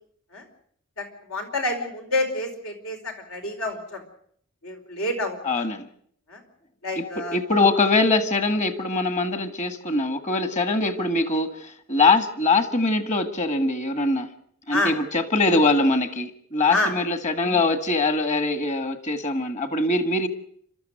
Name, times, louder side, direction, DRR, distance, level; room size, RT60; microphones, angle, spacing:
voice 1, 1.0-4.0 4.6-5.7 6.3-6.4 6.8-7.4 14.7-14.9 16.7-16.9, left 2 dB, 80° left, 3 dB, 4.8 m, -28 dB
voice 2, 5.4-5.9 7.0-14.3 14.7-20.3, left 3 dB, 35° left, 9 dB, 1.8 m, -23 dB
29.5 x 13.5 x 7.9 m, 0.64 s
head